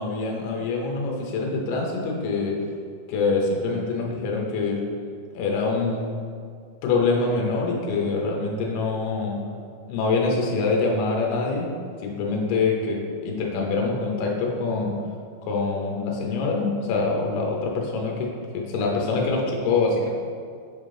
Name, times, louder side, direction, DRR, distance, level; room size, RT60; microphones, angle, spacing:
voice 1, 0.0-2.6 3.1-4.8 5.3-6.2 6.8-9.4 9.9-11.7 12.0-14.9 15.4-20.1, left 3 dB, 75° left, -1 dB, 2.3 m, -25 dB
7.6 x 3.5 x 3.7 m, 2.1 s
omnidirectional pair, 4.3 m